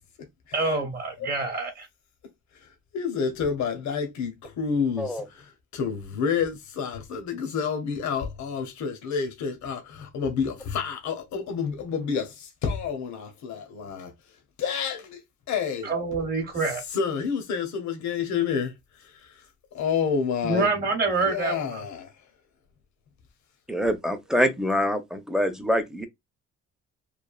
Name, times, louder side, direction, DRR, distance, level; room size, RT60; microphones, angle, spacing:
voice 1, 0.5-1.9 15.8-16.8 20.4-21.8, right 3 dB, 30° right, 0.9 m, -26 dB
voice 2, 2.5-14.1 14.6-15.2 15.5-15.9 16.9-19.5 19.7-20.8 21.2-22.1, left 6 dB, 70° left, 0.8 m, -29 dB
voice 3, 23.7-26.1, equal, ahead, 0.6 m, -25 dB
3.2 x 2.2 x 2.3 m
cardioid pair, 90°, 30 cm